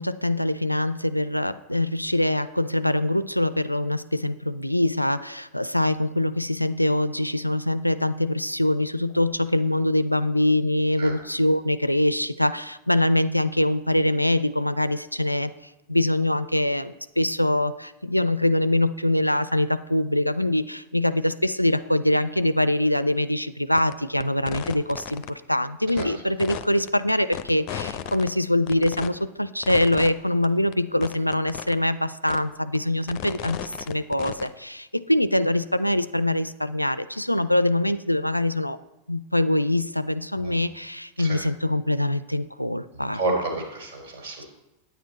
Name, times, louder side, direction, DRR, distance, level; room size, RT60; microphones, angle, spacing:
voice 1, 0.0-15.5 15.9-38.8 39.1-43.2, left 1 dB, 90° left, 14 dB, 0.3 m, -24 dB
sound 1, 23.8-23.9 24.2-25.3 25.9-26.0 26.4-28.3 28.7-29.1 29.6-30.1 30.4-30.5 30.7-30.8 31.0-31.7 32.3-32.4 32.8-34.5, left 10 dB, 40° left, 0.6 m, -34 dB
voice 2, 43.1-44.4, right 2 dB, 55° right, 0 dB, 3.6 m, -30 dB
9.1 x 9.1 x 4.2 m, 0.97 s
figure-of-eight pair, 90°, 0 cm